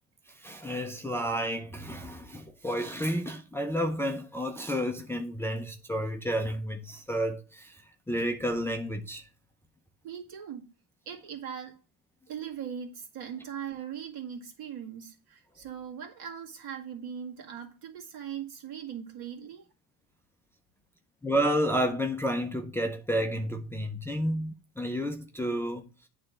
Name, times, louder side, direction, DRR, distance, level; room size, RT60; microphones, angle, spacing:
voice 1, 0.3-9.3 21.2-26.1, equal, 5° left, 0.6 m, -31 dB
voice 2, 10.0-10.7 11.1-11.8 12.3-19.7, right 8 dB, 55° right, 2.1 m, -40 dB
8.6 x 3.4 x 6.3 m
supercardioid pair, 105°, 44 cm